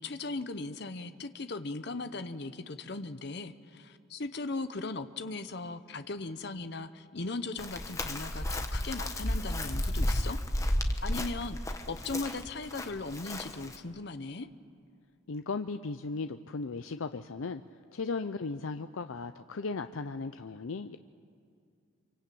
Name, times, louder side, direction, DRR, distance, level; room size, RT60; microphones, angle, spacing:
voice 1, 0.0-10.4 11.0-11.6 11.9-14.5, left 3 dB, 55° left, 10 dB, 0.9 m, -38 dB
Chirp tweet, 7.6-13.8, left 1 dB, 15° left, 1.2 m, -32 dB
voice 2, 15.3-17.6 17.9-21.0, left 4 dB, 85° left, 9 dB, 0.6 m, -36 dB
26.0 x 24.5 x 8.5 m, 2.3 s
head